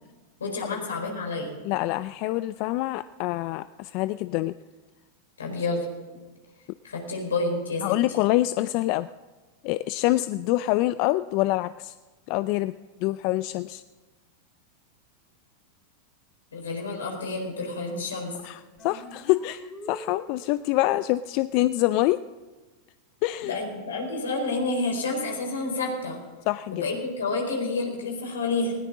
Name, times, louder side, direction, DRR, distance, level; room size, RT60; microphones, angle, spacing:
voice 1, 0.4-1.6 5.4-5.9 6.8-7.9 16.5-18.3 23.4-26.2 26.7-28.8, left 3 dB, 85° left, 1 dB, 4.5 m, -29 dB
voice 2, 1.6-4.6 7.8-9.1 9.6-11.9 12.3-12.7 13.0-13.8 18.4-22.2 23.2-23.6 26.5-26.8, left 17 dB, 50° left, 14 dB, 0.4 m, -26 dB
sound 1, 18.8-20.8, equal, 5° left, 3.6 m, -44 dB
19.5 x 17.5 x 3.7 m, 1.3 s
hypercardioid pair, 100°, 0 cm